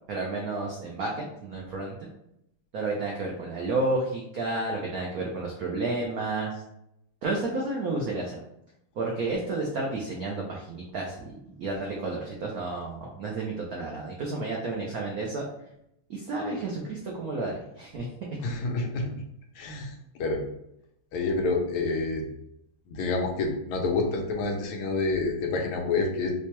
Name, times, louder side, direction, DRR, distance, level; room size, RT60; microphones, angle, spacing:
voice 1, 0.1-2.1 2.7-6.6 7.2-8.4 9.0-15.4 16.1-18.4, right 2 dB, 85° right, -2 dB, 0.7 m, -31 dB
voice 2, 18.4-19.1 19.6-19.9 20.2-20.4 21.1-22.2 22.9-26.3, left 3 dB, 80° left, 2 dB, 1.5 m, -28 dB
4.8 x 2.2 x 2.9 m, 0.80 s
omnidirectional pair, 2.3 m